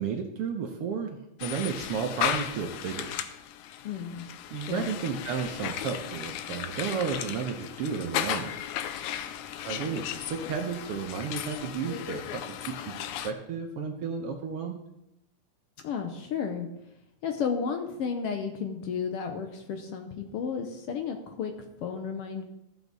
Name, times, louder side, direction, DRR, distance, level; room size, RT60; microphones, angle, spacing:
voice 1, 0.0-3.2 4.5-8.5 9.7-14.8, right 6 dB, 70° right, 3 dB, 1.4 m, -33 dB
sound 1, 1.4-13.3, left 10 dB, 85° left, 2.0 m, -35 dB
voice 2, 3.8-4.3 4.5-4.9 15.8-16.7 17.2-21.5 21.8-22.4, left 6 dB, 70° left, 5 dB, 1.5 m, -33 dB
13.5 x 7.2 x 4.0 m, 0.87 s
omnidirectional pair, 3.4 m